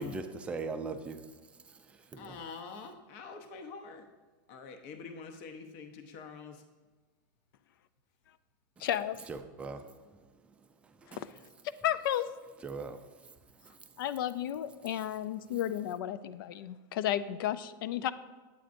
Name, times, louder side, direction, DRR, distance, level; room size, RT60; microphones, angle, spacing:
voice 1, 0.0-2.4 8.8-8.9 9.3-11.3 12.6-14.0 14.9-15.0, right 4 dB, 10° right, 0.4 m, -42 dB
voice 2, 2.2-4.1 4.5-6.6, left 5 dB, 45° left, 0.7 m, -45 dB
voice 3, 8.8-9.2 11.1-11.3 11.8-12.3 14.0-18.1, left 11 dB, 75° left, 0.4 m, -33 dB
8.9 x 8.3 x 2.6 m
supercardioid pair, 165°, 11 cm